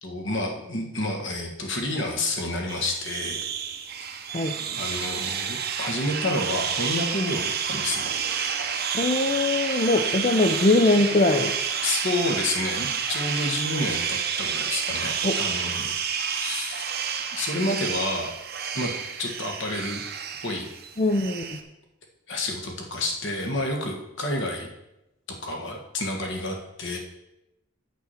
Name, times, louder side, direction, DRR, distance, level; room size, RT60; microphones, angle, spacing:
voice 1, 0.0-3.4 4.8-8.1 11.8-15.9 16.2-17.0 17.3-18.3 18.7-18.9 19.2-20.0 20.4-20.7 22.3-24.7 25.4-27.0, left 1 dB, 55° left, 2 dB, 1.6 m, -29 dB
sound 1, 2.7-21.6, right 7 dB, 45° right, 0.8 m, -30 dB
voice 2, 8.9-11.6 15.2-15.4 21.0-21.6, left 2 dB, 30° left, 4 dB, 0.5 m, -22 dB
8.4 x 6.1 x 5.7 m, 0.90 s
head